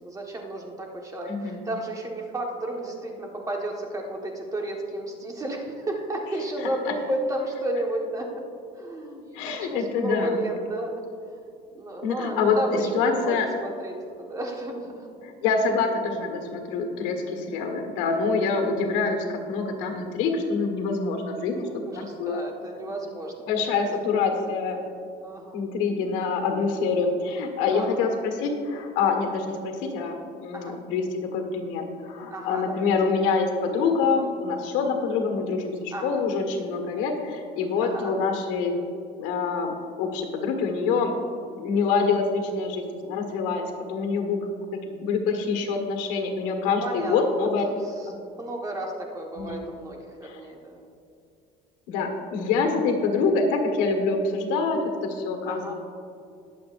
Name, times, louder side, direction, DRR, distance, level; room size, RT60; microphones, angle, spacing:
voice 1, 0.0-8.4 8.8-11.1 11.7-15.0 21.6-23.5 25.2-25.6 27.7-28.1 30.5-30.8 32.3-32.9 35.9-36.3 37.8-38.3 46.5-47.7 48.0-48.1 48.4-50.9 55.4-55.7, right 1 dB, 20° right, 0 dB, 1.5 m, -32 dB
voice 2, 1.3-1.6 6.8-6.9 9.3-10.4 12.0-13.5 15.2-21.7 21.9-22.4 22.7-22.8 23.5-24.8 25.5-38.8 39.2-41.1 41.5-44.4 44.8-47.7 48.1-48.2 49.3-49.6 50.2-50.4 51.9-55.7, left 4 dB, 85° left, 4 dB, 1.7 m, -26 dB
20.5 x 7.7 x 2.6 m, 2.5 s
cardioid pair, 135°, 19 cm